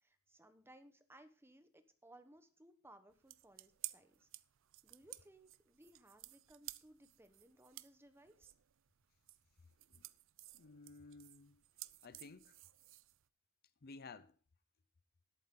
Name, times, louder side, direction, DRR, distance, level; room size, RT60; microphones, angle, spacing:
voice 1, 0.0-4.3 4.8-8.5, right 1 dB, 10° right, 1.1 m, -63 dB
sound 1, 3.1-13.3, right 17 dB, 65° right, 0.5 m, -54 dB
voice 2, 10.5-11.6 12.0-12.5 13.8-14.4, left 4 dB, 45° left, 0.6 m, -55 dB
13.0 x 11.0 x 3.8 m
head